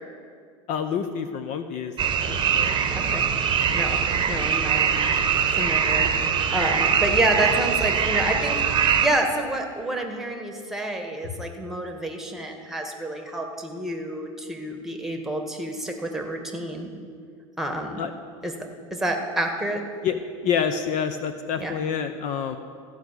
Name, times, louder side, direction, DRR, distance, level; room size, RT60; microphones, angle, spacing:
voice 1, 0.7-1.9 2.3-2.7 18.0-18.1 20.0-20.2 20.4-22.6, left 7 dB, 50° left, 9 dB, 0.7 m, -27 dB
sound 1, 2.0-9.1, right 7 dB, 30° right, 1.0 m, -22 dB
voice 2, 4.3-4.9 5.5-6.1 6.5-16.9 17.6-18.0 18.4-18.5 18.9-19.8 21.6-21.7, right 1 dB, ahead, 3 dB, 1.5 m, -28 dB
14.5 x 4.9 x 8.2 m, 2.1 s
hypercardioid pair, 100°, 17 cm